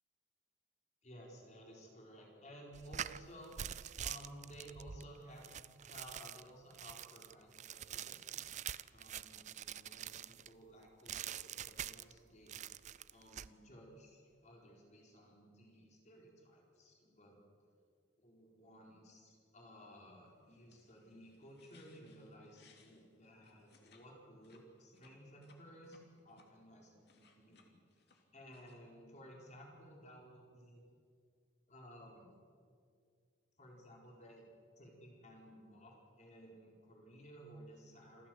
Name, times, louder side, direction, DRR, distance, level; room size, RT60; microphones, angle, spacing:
voice 1, 1.0-5.5 5.8-8.5 8.9-17.4 18.2-26.0 26.2-27.8 28.3-30.8 31.7-32.3 33.6-34.4 34.8-38.3, equal, 40° left, -1 dB, 4.3 m, -56 dB
sound 1, 2.7-10.5 11.1-12.2 12.5-13.5, right 9 dB, 40° right, 0.4 m, -46 dB
sound 2, 20.4-24.1 24.3-26.5 26.9-28.8, left 4 dB, 60° left, 2.8 m, -68 dB
27.5 x 14.5 x 7.8 m, 2.2 s
head